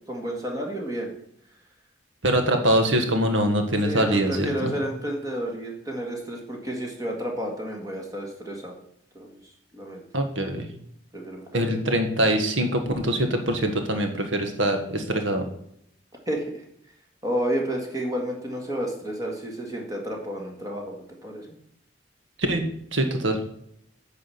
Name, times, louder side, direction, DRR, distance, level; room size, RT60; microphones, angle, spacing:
voice 1, 0.1-1.1 3.9-8.7 9.1-10.0 11.1-11.8 16.3-16.5 17.2-21.5, right 1 dB, 20° right, 1 dB, 1.8 m, -31 dB
voice 2, 2.2-4.7 10.1-10.7 11.5-15.4 22.5-22.6 22.9-23.4, right 1 dB, 85° right, 6 dB, 1.4 m, -23 dB
9.3 x 4.9 x 7.0 m, 0.72 s
head